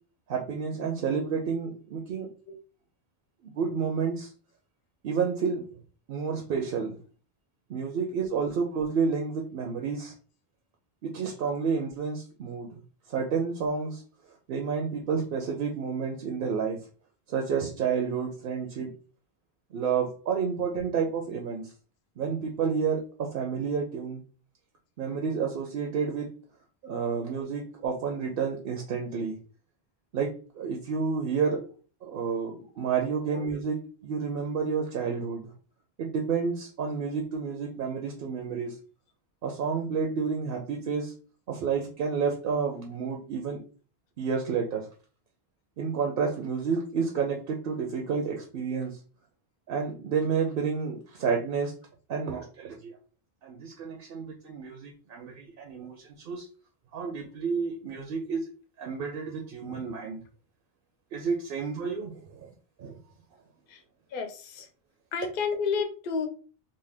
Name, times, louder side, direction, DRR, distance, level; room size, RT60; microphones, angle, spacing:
voice 1, 0.3-2.3 3.4-4.3 5.0-5.7 6.1-7.0 7.7-10.1 11.0-12.8 13.1-14.0 14.5-16.8 17.3-18.9 19.7-21.7 22.2-24.2 25.0-26.3 26.8-29.4 30.1-31.7 32.0-35.5 36.0-38.8 39.4-41.1 41.5-43.6 44.2-44.9 45.8-49.0 49.7-51.7 52.1-52.9 53.4-56.5 56.9-58.4 58.8-60.2 61.1-62.5 62.8-63.0, right 6 dB, 65° right, 1 dB, 0.7 m, -30 dB
voice 2, 64.1-64.6 65.1-66.3, left 5 dB, 65° left, 6 dB, 0.7 m, -30 dB
2.7 x 2.1 x 3.2 m, 0.38 s
omnidirectional pair, 1.1 m